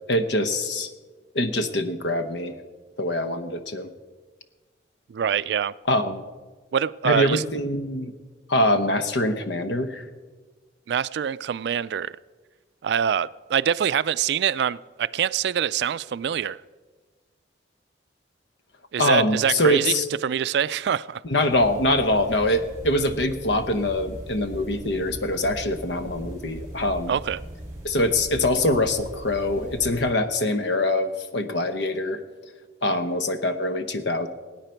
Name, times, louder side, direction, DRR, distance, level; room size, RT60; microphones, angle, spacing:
voice 1, 0.1-0.9 1.3-2.5 3.0-3.9 5.9-6.2 7.0-8.1 8.5-10.0 19.0-20.1 21.2-27.1 27.8-32.2 32.8-34.3, left 1 dB, 75° left, 10 dB, 0.9 m, -24 dB
voice 2, 5.1-5.7 6.7-7.4 10.9-12.1 12.8-16.6 18.9-19.9 20.2-21.2 27.1-27.4, right 8 dB, 65° right, 18 dB, 0.3 m, -24 dB
sound 1, 21.5-30.1, equal, 15° right, 4.3 m, -39 dB
18.5 x 9.0 x 4.5 m, 1.4 s
head